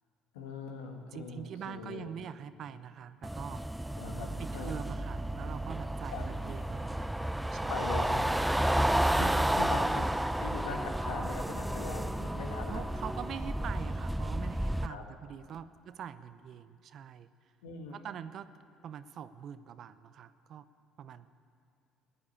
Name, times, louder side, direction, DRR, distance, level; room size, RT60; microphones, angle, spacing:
voice 1, 0.3-2.1 4.0-4.8 6.1-6.3 7.7-12.9 14.9-15.0 17.6-18.0, left 4 dB, 90° left, 3 dB, 1.7 m, -41 dB
voice 2, 1.1-3.7 4.4-7.1 7.5-7.8 9.0-9.7 12.7-17.3 17.9-18.5 18.8-20.7 21.0-21.3, right 8 dB, 55° right, 14 dB, 0.6 m, -44 dB
sound 1, 3.2-14.9, right 1 dB, 5° right, 0.5 m, -31 dB
15.5 x 9.5 x 8.7 m, 2.3 s
hypercardioid pair, 70°, 0 cm